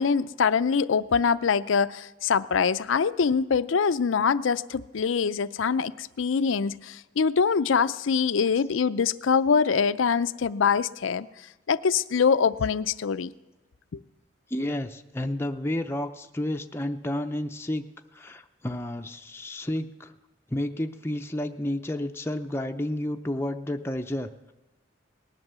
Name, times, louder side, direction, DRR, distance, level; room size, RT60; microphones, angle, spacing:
voice 1, 0.0-11.3 11.7-13.3 13.9-14.0, left 6 dB, 80° left, 0.5 m, -24 dB
voice 2, 14.5-17.9 18.1-20.1 20.5-24.5, left 1 dB, 10° left, 0.5 m, -31 dB
19.0 x 11.0 x 6.8 m
head